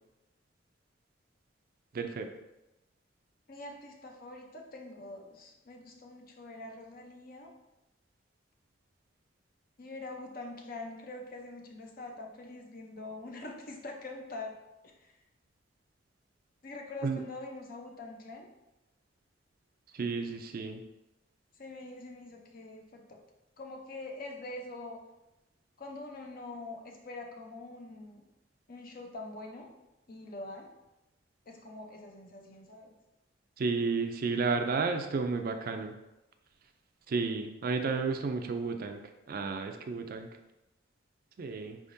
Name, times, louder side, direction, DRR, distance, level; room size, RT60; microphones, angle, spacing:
voice 1, 1.9-2.3 17.0-17.2 19.9-20.8 33.6-35.9 37.1-39.0 39.3-40.3 41.4-41.8, right 4 dB, 50° right, 6 dB, 0.4 m, -32 dB
voice 2, 3.5-7.5 9.8-14.6 15.0-15.2 16.6-18.5 21.6-23.2 23.6-25.0 25.8-28.2 28.7-29.7 30.1-30.7 31.5-32.9, left 2 dB, 50° left, 2 dB, 0.7 m, -44 dB
4.8 x 3.6 x 2.6 m, 0.95 s
head